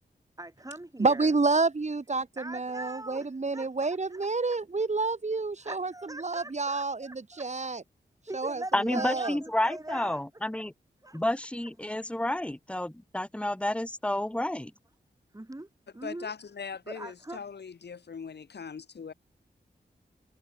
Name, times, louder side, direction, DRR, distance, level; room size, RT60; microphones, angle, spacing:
voice 1, 0.4-1.3 2.4-4.6 5.6-7.5 8.3-10.3 11.0-11.2 15.3-16.3 16.9-17.4, right 1 dB, 20° right, 3.6 m, -42 dB
voice 2, 1.0-5.9 6.2-7.8 8.3-8.6 8.9-9.3, right 3 dB, 40° right, 2.0 m, -29 dB
voice 3, 8.7-10.7 11.1-14.7, left 1 dB, 5° left, 1.1 m, -30 dB
voice 4, 16.0-19.1, left 6 dB, 75° left, 1.6 m, -40 dB
cardioid pair, 60°, 18 cm